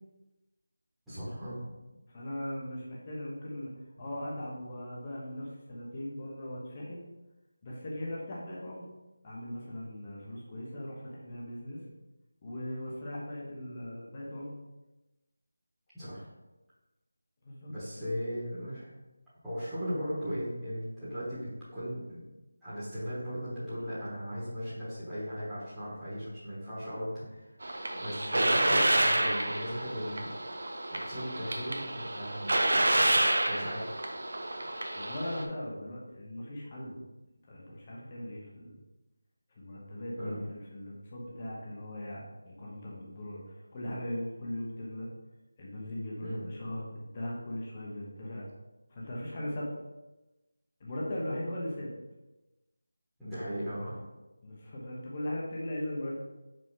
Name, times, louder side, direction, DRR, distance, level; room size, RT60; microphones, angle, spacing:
voice 1, 1.1-1.6 15.9-16.2 17.7-18.9 19.4-22.2 22.6-27.5 28.0-30.3 31.1-32.5 33.5-34.0 40.2-40.3 46.2-46.5 53.2-54.0, equal, ahead, -17 dB, 1.2 m, -37 dB
voice 2, 2.1-3.7 4.0-7.0 7.6-8.8 9.2-11.8 12.4-14.5 17.4-17.7 34.9-37.0 37.5-38.7 39.6-40.4 40.7-45.1 45.6-48.5 48.9-49.7 50.8-51.9 54.4-56.2, left 1 dB, 20° left, -5 dB, 0.9 m, -39 dB
sound 1, 27.6-35.4, right 1 dB, 55° right, 0.9 m, -29 dB
5.3 x 5.0 x 3.7 m, 1.0 s
figure-of-eight pair, 180°, 0 cm